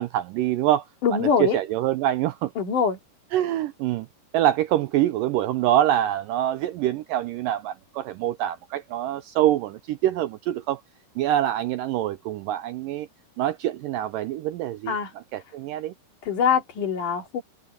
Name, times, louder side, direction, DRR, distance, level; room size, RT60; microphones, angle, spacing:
voice 1, 0.0-0.9 1.2-2.5 3.3-4.1 4.3-10.8 11.2-13.1 13.4-15.0 15.3-15.9, right 13 dB, 90° right, 2.0 m, -25 dB
voice 2, 1.0-1.6 2.6-3.0 14.9-15.1 16.2-17.4, left 6 dB, 55° left, 3.9 m, -23 dB
omnidirectional pair, 4.6 m